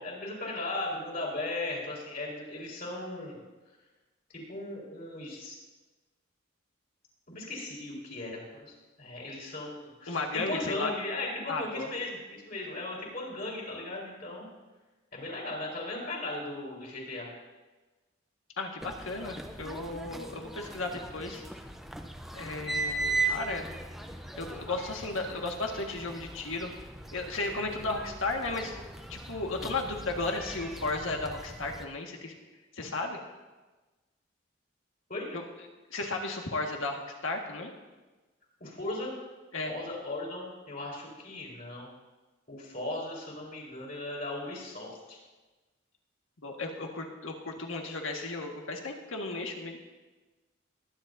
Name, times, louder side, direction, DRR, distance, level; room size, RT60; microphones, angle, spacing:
voice 1, 0.0-3.4 4.3-5.6 7.3-14.5 15.1-17.3 35.1-35.3 38.6-39.1 39.6-41.9 42.5-45.2, left 2 dB, 45° left, -3 dB, 4.2 m, -37 dB
voice 2, 10.1-10.9 11.5-11.9 18.6-21.4 22.3-23.7 24.3-26.7 27.1-28.7 29.1-32.3 32.7-33.2 35.3-35.4 35.9-37.7 39.5-39.7 46.4-49.8, left 3 dB, 85° left, 2 dB, 1.7 m, -34 dB
sound 1, 18.8-31.9, right 3 dB, ahead, 0.6 m, -38 dB
22.0 x 10.5 x 2.7 m, 1.2 s
head